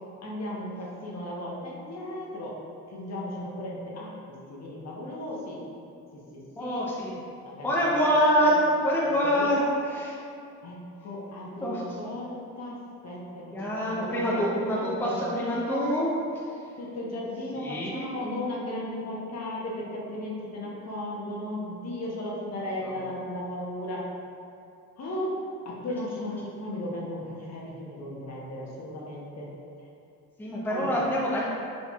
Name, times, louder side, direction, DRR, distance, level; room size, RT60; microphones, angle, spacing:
voice 1, 0.2-2.6 2.9-5.6 6.1-6.8 7.4-8.0 8.4-8.5 9.0-10.0 10.6-16.0 16.8-24.1 25.0-25.4 25.6-29.5 29.8-29.9 30.7-31.0, left 1 dB, 35° left, -3 dB, 1.0 m, -36 dB
voice 2, 6.6-7.2 7.6-9.6 9.9-10.1 11.6-11.8 13.5-16.1 17.6-18.1 30.4-31.5, equal, 5° left, -5 dB, 0.6 m, -25 dB
4.3 x 4.0 x 2.3 m, 2.6 s
hypercardioid pair, 55°, 44 cm